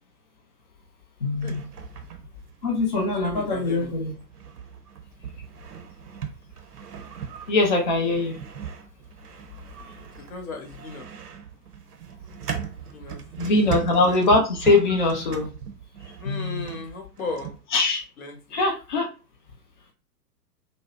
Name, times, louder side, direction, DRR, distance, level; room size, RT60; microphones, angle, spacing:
voice 1, 1.2-1.6 2.6-4.1 7.5-8.4 13.4-15.5 16.2-16.7 17.7-18.0 18.5-19.1, left 2 dB, 35° left, 1 dB, 0.4 m, -22 dB
sound 1, 1.4-17.6, right 8 dB, 65° right, 0.6 m, -39 dB
voice 2, 3.2-4.0 10.3-11.1 12.9-13.2 13.5-13.7 16.2-17.5 18.2-18.4, left 3 dB, 55° left, 3 dB, 0.9 m, -35 dB
2.6 x 2.0 x 2.3 m, 0.33 s
figure-of-eight pair, 110°, 50 cm